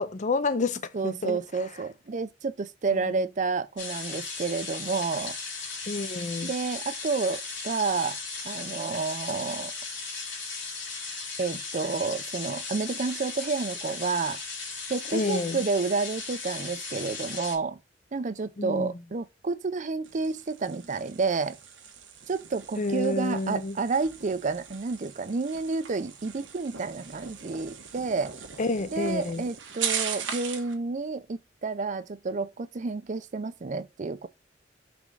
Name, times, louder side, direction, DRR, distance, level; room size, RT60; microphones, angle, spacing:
voice 1, 0.0-1.4 5.9-6.5 15.1-15.6 18.6-18.9 22.8-23.7 28.6-29.4, left 3 dB, 40° left, 0.5 m, -29 dB
voice 2, 0.9-5.4 6.4-8.2 8.4-9.7 11.4-14.4 14.9-17.8 18.1-21.6 22.3-28.3 28.9-34.3, right 4 dB, 40° right, 0.5 m, -30 dB
sound 1, 3.8-17.6, left 4 dB, 85° left, 2.7 m, -36 dB
sound 2, 20.0-30.7, right 7 dB, 90° right, 1.2 m, -39 dB
5.1 x 3.6 x 5.3 m
head